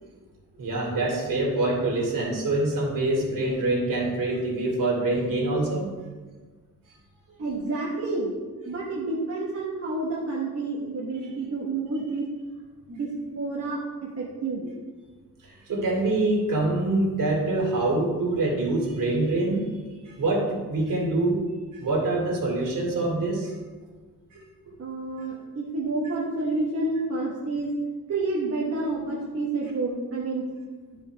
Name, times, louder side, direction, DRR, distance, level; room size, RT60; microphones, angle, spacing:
voice 1, 0.6-5.9 15.7-19.7 20.0-21.4 21.7-23.5 24.3-24.4 24.7-24.8 26.0-26.1, right 2 dB, 65° right, -3 dB, 2.5 m, -25 dB
voice 2, 7.4-8.4 8.6-12.2 12.9-13.1 13.3-14.7 24.8-27.7 28.1-30.5, right 3 dB, 45° right, -5 dB, 1.2 m, -29 dB
12.0 x 5.2 x 3.4 m, 1.4 s
wide cardioid pair, 175°, 34 cm